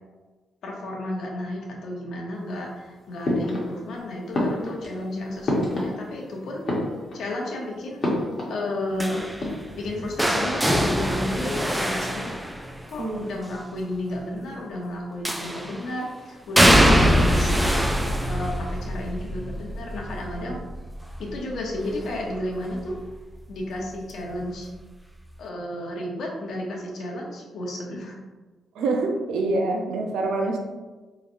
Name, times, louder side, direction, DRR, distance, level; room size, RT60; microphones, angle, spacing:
voice 1, 0.6-6.6 7.1-8.1 8.5-9.2 9.8-12.6 12.9-20.6 21.2-22.9 23.5-24.7 25.4-28.2, left 1 dB, 75° left, -1 dB, 0.9 m, -32 dB
sound 1, 3.2-4.0 4.3-6.3 6.6-7.4 8.0-9.0 9.2-9.8, left 1 dB, 50° left, 1.1 m, -28 dB
sound 2, 9.0-13.0 15.2-15.8 16.6-22.4 22.7-23.1 24.4-24.5, equal, 10° right, 0.4 m, -23 dB
voice 2, 13.0-13.4 28.7-30.6, right 2 dB, 90° right, 1 dB, 0.5 m, -26 dB
3.9 x 3.1 x 2.6 m, 1.2 s
cardioid pair, 80°, 0 cm